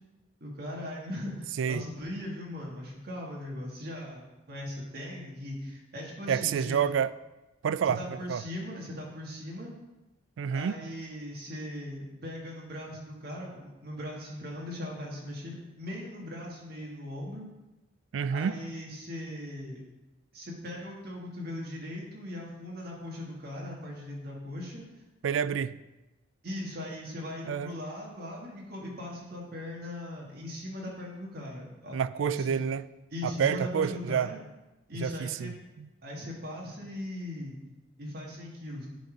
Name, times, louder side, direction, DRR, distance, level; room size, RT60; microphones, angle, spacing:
voice 1, 0.4-6.8 7.8-9.7 10.5-17.4 18.3-19.8 20.3-24.8 26.4-32.6 33.1-34.4 34.9-35.5 36.0-37.5 38.0-38.9, left 1 dB, 50° right, 1.6 m, -39 dB
voice 2, 6.3-7.1 7.6-8.0 8.3-8.4 10.4-10.8 18.1-18.6 25.2-25.8 27.5-27.7 31.9-32.9 33.2-34.3 35.0-35.9, right 7 dB, 70° right, 0.3 m, -28 dB
10.5 x 4.2 x 4.9 m
head